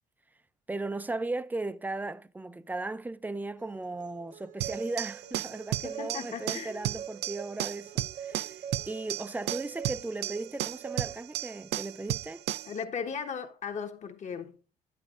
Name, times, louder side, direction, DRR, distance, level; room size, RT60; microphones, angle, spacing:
voice 1, 0.7-12.4, right 2 dB, 10° right, 0.4 m, -37 dB
sound 1, 3.6-11.2, right 7 dB, 50° right, 0.7 m, -44 dB
sound 2, 4.6-12.8, right 14 dB, 75° right, 0.4 m, -34 dB
voice 2, 5.8-6.7 12.7-14.6, left 6 dB, 45° left, 1.2 m, -37 dB
10.0 x 8.8 x 2.5 m
cardioid pair, 110°, 17 cm